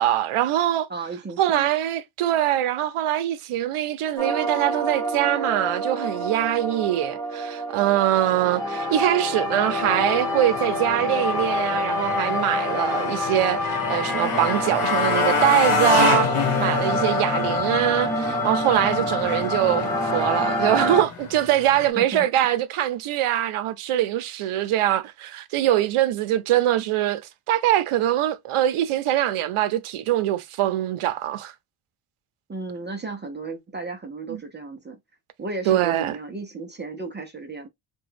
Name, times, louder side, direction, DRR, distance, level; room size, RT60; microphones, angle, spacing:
voice 1, 0.0-0.9 1.4-16.3 16.6-27.2 27.5-31.5 34.3-34.4 35.7-36.2, right 13 dB, 80° right, 0.6 m, -23 dB
voice 2, 0.9-1.7 21.8-22.3 32.5-35.0 35.4-37.7, right 3 dB, 25° right, 0.4 m, -34 dB
sound 1, 4.2-21.0, left 1 dB, 5° left, 0.8 m, -27 dB
Motorcycle, 9.8-21.9, left 5 dB, 80° left, 1.1 m, -28 dB
2.9 x 2.2 x 3.2 m
wide cardioid pair, 150°, 50 cm